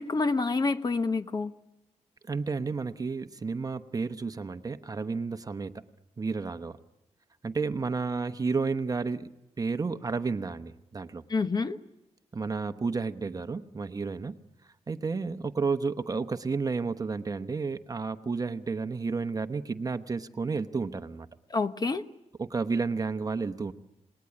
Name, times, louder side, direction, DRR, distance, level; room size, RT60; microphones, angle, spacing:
voice 1, 0.0-1.5 11.3-11.8 21.5-22.0, left 3 dB, 35° left, 10 dB, 1.0 m, -28 dB
voice 2, 2.3-5.7 6.2-6.8 7.4-11.2 12.3-14.4 14.9-21.3 22.4-23.7, right 4 dB, 30° right, 10 dB, 0.9 m, -31 dB
28.0 x 20.0 x 9.7 m, 0.95 s
wide cardioid pair, 130°, 12 cm